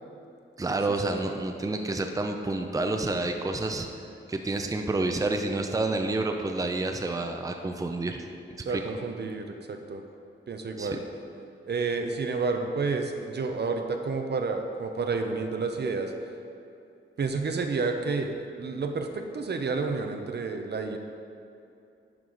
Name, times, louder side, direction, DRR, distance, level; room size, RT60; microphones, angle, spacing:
voice 1, 0.6-3.9 4.3-8.2 8.7-8.8 10.8-10.9, right 2 dB, 15° right, 4 dB, 0.5 m, -29 dB
voice 2, 8.6-10.0 10.5-11.0 11.7-16.1 17.2-21.0, right 4 dB, 55° right, 5 dB, 0.7 m, -30 dB
10.5 x 4.7 x 3.9 m, 2.7 s
cardioid pair, 80°, 21 cm